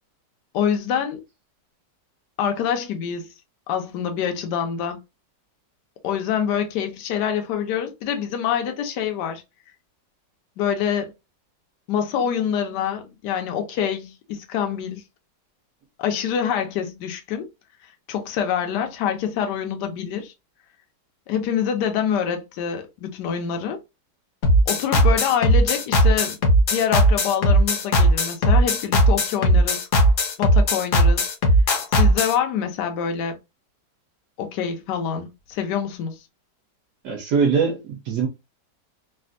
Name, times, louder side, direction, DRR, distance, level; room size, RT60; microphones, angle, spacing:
voice 1, 0.5-1.2 2.4-3.3 3.7-5.0 6.0-9.4 10.6-11.1 11.9-15.0 16.0-17.5 18.1-20.3 21.3-23.8 24.7-26.4 26.7-29.9 30.4-31.2 31.9-33.4 34.4-36.2, left 8 dB, 75° left, 1.2 m, -26 dB
sound 1, 24.4-32.3, equal, 60° left, 0.9 m, -17 dB
voice 2, 37.0-38.3, right 6 dB, 70° right, 1.2 m, -22 dB
3.3 x 2.4 x 2.4 m
omnidirectional pair, 1.9 m